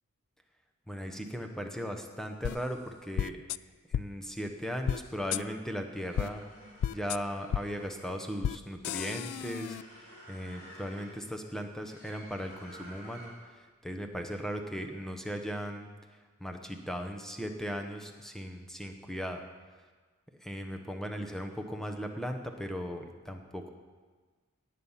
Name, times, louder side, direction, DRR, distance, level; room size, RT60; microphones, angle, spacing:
voice 1, 0.9-3.4 3.9-6.4 6.9-15.9 16.4-19.4 20.4-23.7, equal, ahead, 4 dB, 1.0 m, -37 dB
sound 1, 2.4-2.5 3.2-3.6 3.9-4.0 4.9-5.0 5.3-5.4 6.2-6.3 6.8-7.2 7.5-7.6 8.4-8.6 8.8-9.8, left 9 dB, 80° left, 0.3 m, -32 dB
sound 2, 5.9-13.6, equal, 40° left, 3.7 m, -52 dB
18.0 x 8.3 x 5.7 m, 1.4 s
head